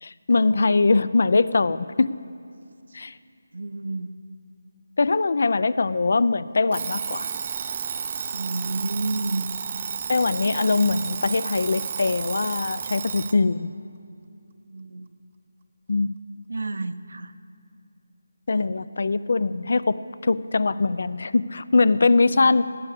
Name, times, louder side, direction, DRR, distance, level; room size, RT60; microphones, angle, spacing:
voice 1, 0.0-2.1 2.9-3.1 5.0-7.3 10.1-13.7 15.9-16.2 18.5-22.6, left 3 dB, 55° left, 17 dB, 0.4 m, -22 dB
voice 2, 3.5-4.1 8.3-9.5 14.7-15.1 16.5-17.3 18.5-18.7 21.8-22.0 22.3-22.5, right 2 dB, 75° right, 11 dB, 0.7 m, -31 dB
Alarm, 6.7-13.4, right 6 dB, 30° right, 0.5 m, -32 dB
18.0 x 8.4 x 8.2 m, 2.4 s
figure-of-eight pair, 175°, 0 cm